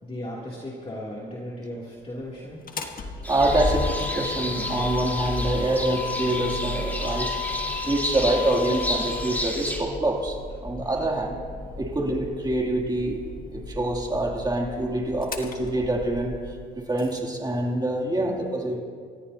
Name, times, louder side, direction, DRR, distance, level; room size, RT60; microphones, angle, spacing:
voice 1, 0.0-2.6 7.6-7.7 10.8-10.9 11.5-11.7, left 1 dB, 30° left, -5 dB, 2.8 m, -36 dB
Motor vehicle (road), 2.5-17.2, left 4 dB, 45° left, 1.5 m, -34 dB
sound 1, 3.2-9.8, equal, 10° left, 3.7 m, -32 dB
voice 2, 3.3-7.4 7.8-10.4 10.6-11.4 11.8-16.3 16.8-18.8, right 1 dB, 20° right, -1 dB, 2.7 m, -26 dB
27.5 x 14.0 x 2.8 m, 2.1 s
cardioid pair, 90°, 20 cm